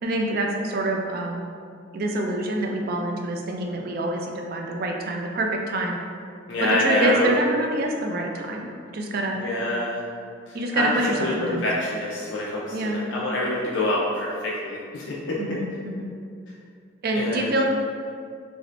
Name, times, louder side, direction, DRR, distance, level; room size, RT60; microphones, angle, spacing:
voice 1, 0.0-1.4 1.9-6.0 6.7-9.4 10.5-11.7 12.7-13.0 15.4-16.1 17.0-17.7, right 1 dB, 50° right, 1 dB, 0.3 m, -26 dB
voice 2, 6.5-7.3 9.4-10.0 10.5-10.9 11.2-11.3 11.6-12.8 13.1-15.4 17.2-17.5, left 1 dB, 60° left, -5 dB, 0.4 m, -26 dB
2.9 x 2.6 x 3.1 m, 2.3 s
head